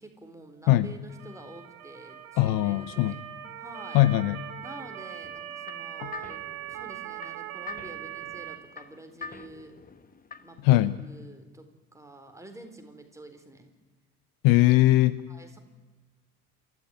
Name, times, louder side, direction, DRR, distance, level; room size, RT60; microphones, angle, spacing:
voice 1, 0.0-3.2 3.6-4.0 4.6-9.8 10.4-13.7 15.3-15.6, right 1 dB, 5° right, 5 dB, 4.0 m, -48 dB
Motor vehicle (road) / Siren, 1.1-8.6, right 12 dB, 70° right, 2.2 m, -41 dB
voice 2, 2.4-3.1 3.9-4.4 6.0-6.1 10.6-11.0 14.4-15.2, left 16 dB, 50° left, 18 dB, 0.8 m, -20 dB
sound 1, 5.2-10.7, left 4 dB, 20° left, 1.2 m, -45 dB
28.0 x 14.5 x 9.6 m, 1.4 s
figure-of-eight pair, 60°, 45 cm